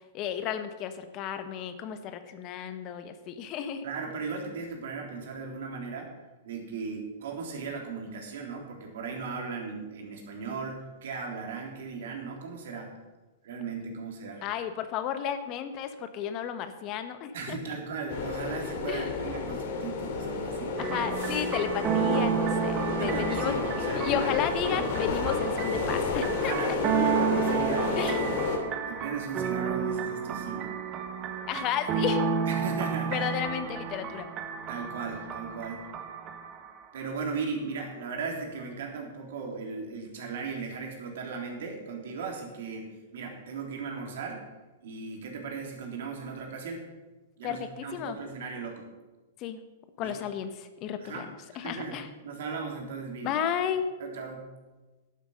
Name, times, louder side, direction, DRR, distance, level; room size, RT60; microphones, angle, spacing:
voice 1, 0.1-3.8 14.4-17.6 18.9-19.1 20.8-26.5 28.0-28.2 31.5-32.2 33.1-34.3 47.4-48.2 49.4-49.6 50.0-51.2 51.6-52.1 53.2-53.9, left 9 dB, 40° left, 10 dB, 1.1 m, -33 dB
voice 2, 3.8-6.1 6.4-12.9 13.4-14.5 17.3-20.8 22.9-24.4 24.6-25.1 26.4-30.7 32.5-33.3 34.7-35.8 36.9-44.4 44.8-46.8 47.4-48.9 50.0-50.1 51.0-53.3 54.0-54.5, right 4 dB, 65° right, 1 dB, 3.5 m, -37 dB
sound 1, 18.1-28.6, left 4 dB, 55° left, 2.6 m, -31 dB
sound 2, 20.8-36.9, right 7 dB, 35° right, 1.6 m, -31 dB
11.0 x 9.4 x 6.5 m, 1.2 s
hypercardioid pair, 115°, 0 cm